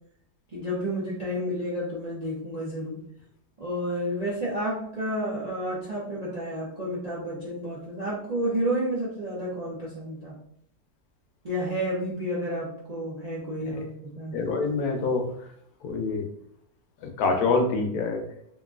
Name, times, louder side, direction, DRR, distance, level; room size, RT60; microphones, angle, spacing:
voice 1, 0.5-3.0 3.6-10.3 11.4-13.9 14.2-14.3, equal, 65° right, -8 dB, 0.4 m, -30 dB
voice 2, 14.3-15.5 15.8-16.3 17.0-18.2, left 3 dB, 70° left, 3 dB, 1.0 m, -26 dB
2.9 x 2.5 x 2.4 m, 0.71 s
omnidirectional pair, 1.7 m